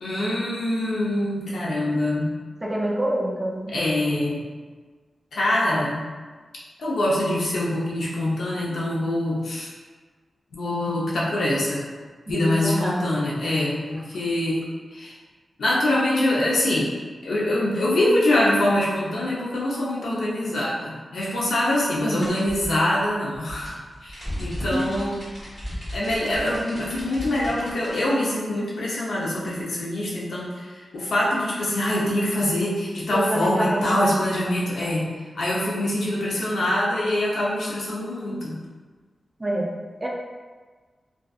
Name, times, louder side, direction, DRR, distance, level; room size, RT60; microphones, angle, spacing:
voice 1, 0.0-2.3 3.7-4.4 5.3-6.0 6.8-9.7 10.5-11.8 12.2-14.6 14.9-15.1 15.6-16.9 17.2-25.2 25.9-35.1 35.3-38.6, left 1 dB, 90° left, -6 dB, 0.6 m, -24 dB
voice 2, 2.6-3.7 12.3-13.1 22.0-22.2 24.7-24.9 33.1-34.1 39.4-39.7 40.0-40.1, right 1 dB, 15° right, -1 dB, 0.3 m, -26 dB
sound 1, 22.2-28.0, equal, 20° left, 1.2 m, -35 dB
2.5 x 2.4 x 2.3 m, 1.4 s
wide cardioid pair, 150°, 0 cm